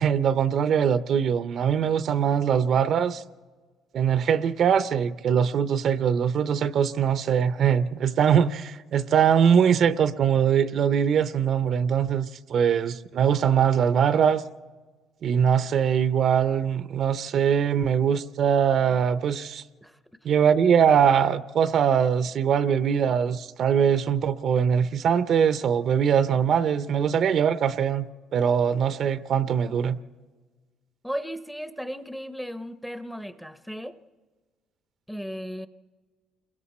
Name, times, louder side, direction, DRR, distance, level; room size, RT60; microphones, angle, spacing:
voice 1, 0.0-3.2 3.9-14.4 15.2-19.6 20.2-28.0 28.3-30.0, right 8 dB, 50° right, 0.6 m, -22 dB
voice 2, 31.0-34.0 35.1-35.7, equal, ahead, 0.7 m, -35 dB
29.0 x 22.0 x 4.3 m
cardioid pair, 135°, 0 cm